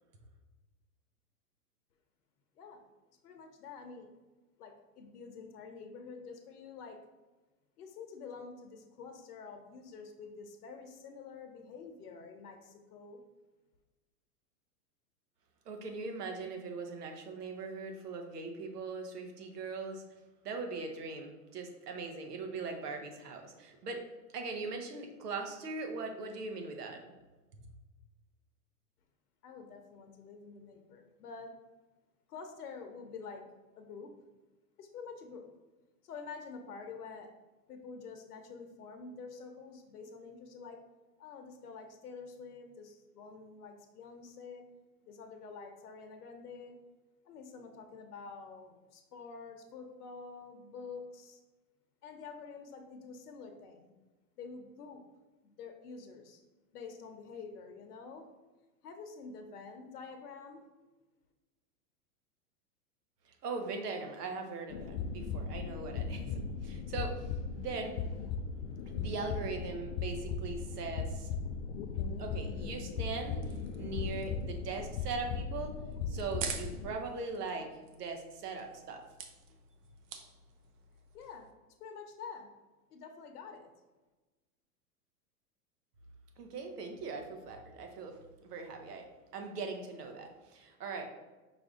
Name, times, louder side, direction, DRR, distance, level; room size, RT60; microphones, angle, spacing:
voice 1, 3.2-4.1 4.6-7.0 7.8-13.2 29.4-31.5 32.3-33.4 33.8-34.1 34.8-35.5 36.0-37.3 37.7-40.8 41.2-44.7 45.0-46.8 47.2-51.4 52.0-53.9 54.4-55.0 55.4-56.4 56.7-58.3 58.8-60.6 81.1-81.5 81.8-82.5 82.9-83.7, left 5 dB, 75° left, 4 dB, 0.8 m, -48 dB
voice 2, 15.7-20.0 20.4-24.0 24.3-27.0 63.2-68.0 68.9-71.3 72.2-73.5 73.8-75.8 76.1-79.1 86.4-89.1 89.3-91.1, right 4 dB, 85° right, 4 dB, 1.0 m, -40 dB
sound 1, 64.7-76.9, left 5 dB, 50° left, 0.5 m, -38 dB
sound 2, 72.9-81.5, right 6 dB, 35° right, 0.5 m, -48 dB
5.5 x 2.5 x 3.6 m, 1.2 s
hypercardioid pair, 125°, 46 cm